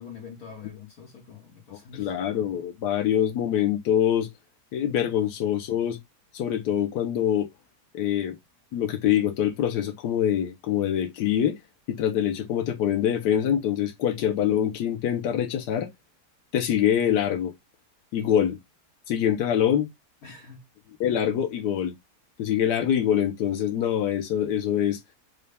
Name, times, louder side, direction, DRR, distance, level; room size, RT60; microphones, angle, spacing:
voice 1, 0.0-2.1 20.2-20.6, left 6 dB, 65° left, 1.6 m, -44 dB
voice 2, 1.7-4.3 4.7-6.0 6.3-7.5 7.9-8.4 8.7-11.6 11.9-15.9 16.5-17.5 18.1-18.6 19.1-19.9 21.0-21.9 22.4-25.0, left 10 dB, 85° left, 1.3 m, -24 dB
5.4 x 2.2 x 3.3 m
omnidirectional pair, 1.7 m